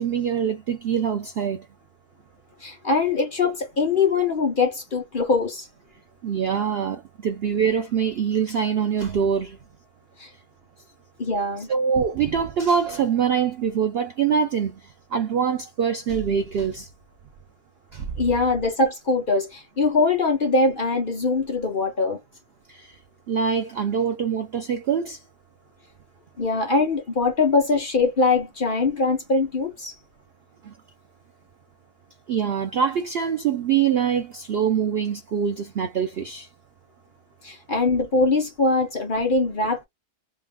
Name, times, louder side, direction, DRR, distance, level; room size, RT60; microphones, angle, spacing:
voice 1, 0.0-1.6 6.2-9.6 11.7-14.8 15.1-16.9 17.9-18.1 22.7-23.0 23.3-25.2 30.6-30.7 32.3-36.5, right 7 dB, 90° right, 0.5 m, -24 dB
voice 2, 2.6-5.7 10.2-10.3 11.2-11.7 18.2-22.2 26.4-30.0 37.4-39.8, left 3 dB, 45° left, 0.7 m, -22 dB
3.0 x 2.5 x 3.3 m
omnidirectional pair, 1.7 m